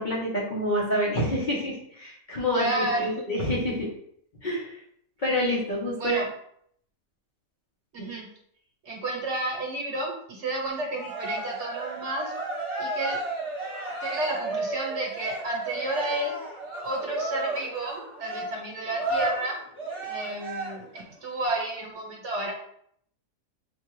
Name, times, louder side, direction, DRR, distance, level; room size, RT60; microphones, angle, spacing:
voice 1, 0.0-3.9 4.4-4.8 5.2-6.2 8.0-8.1, equal, 40° left, -6 dB, 0.9 m, -27 dB
voice 2, 2.5-3.2 6.0-6.2 7.9-8.3 8.8-12.3 12.8-13.2 14.0-16.3 16.8-19.6 20.0-22.5, right 2 dB, 60° right, -1 dB, 1.2 m, -31 dB
Cheering, 10.9-21.0, right 2 dB, 5° left, 1.3 m, -33 dB
4.5 x 2.4 x 3.0 m, 0.68 s
omnidirectional pair, 1.5 m